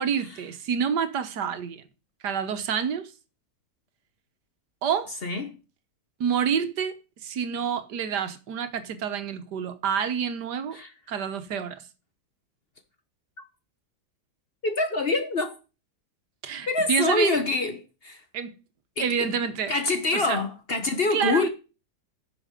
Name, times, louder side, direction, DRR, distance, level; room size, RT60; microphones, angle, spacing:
voice 1, 0.0-1.8 2.2-3.1 4.8-5.1 6.2-6.9 7.2-10.8 11.1-11.8 16.4-17.4 18.3-18.5 19.0-19.7 20.1-20.4 21.1-21.5, right 7 dB, 75° right, 1.6 m, -28 dB
voice 2, 5.2-5.5 10.7-10.9 14.6-15.6 16.7-18.2 19.0-19.3 19.7-21.5, left 3 dB, 40° left, 1.0 m, -25 dB
10.5 x 6.5 x 5.1 m
omnidirectional pair, 1.8 m